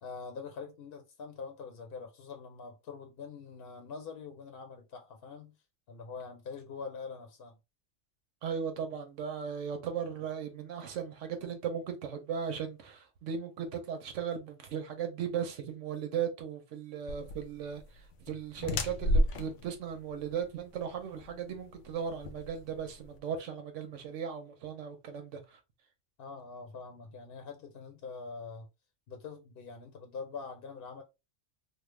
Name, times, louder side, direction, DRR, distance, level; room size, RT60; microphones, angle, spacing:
voice 1, 0.0-5.6 5.9-7.6 26.2-28.7 29.1-31.0, left 5 dB, 60° left, 0.8 m, -44 dB
voice 2, 8.4-17.8 18.3-25.4, right 7 dB, 85° right, 1.1 m, -37 dB
sound 1, 17.1-23.2, equal, 85° left, 0.9 m, -33 dB
3.3 x 2.1 x 3.2 m
omnidirectional pair, 1.2 m